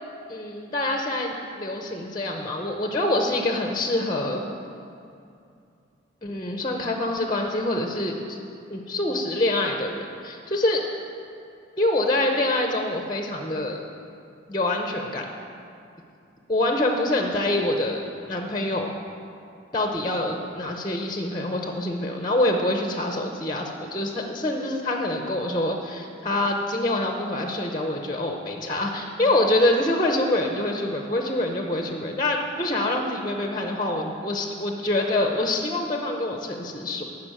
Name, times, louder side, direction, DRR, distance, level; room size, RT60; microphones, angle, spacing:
voice 1, 0.3-4.4 6.2-8.4 8.7-10.8 11.8-13.8 14.5-15.3 16.5-18.0 18.3-18.9 19.7-37.0, left 1 dB, 20° left, 3 dB, 0.7 m, -25 dB
11.0 x 6.0 x 8.8 m, 2.5 s
head